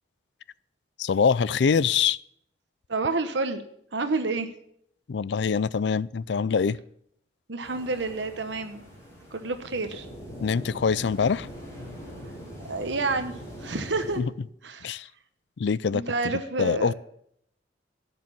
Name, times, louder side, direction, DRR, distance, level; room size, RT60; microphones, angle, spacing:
voice 1, 1.0-2.2 5.1-6.8 10.4-11.5 14.2-14.3 14.8-15.1 15.6-16.0 16.6-16.9, left 6 dB, 80° left, 0.4 m, -24 dB
voice 2, 2.9-3.6 3.9-4.5 7.5-8.8 9.3-10.1 12.7-14.2 14.6-15.0 15.9-16.9, right 3 dB, 90° right, 1.1 m, -29 dB
sound 1, 7.6-14.2, equal, 15° left, 6.0 m, -42 dB
12.0 x 6.8 x 8.7 m
head